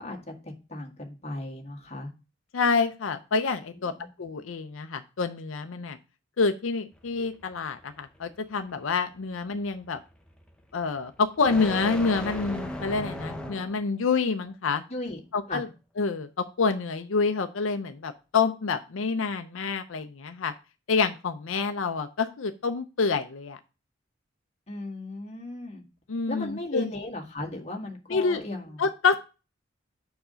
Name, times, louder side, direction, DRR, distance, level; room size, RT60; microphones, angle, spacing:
voice 1, 0.0-2.1 3.7-4.1 14.9-15.2 15.5-15.7 24.7-25.8 26.3-28.8, left 1 dB, 35° left, 1 dB, 1.6 m, -36 dB
voice 2, 2.5-3.9 4.2-6.0 6.4-10.0 10.7-14.8 15.3-15.7 16.0-16.3 16.6-20.5 20.9-23.6 26.1-26.9 28.1-28.4 28.8-29.2, left 4 dB, 90° left, 8 dB, 0.6 m, -27 dB
sound 1, 6.9-13.9, left 1 dB, 5° left, 0.8 m, -39 dB
6.6 x 4.8 x 5.0 m, 0.30 s
head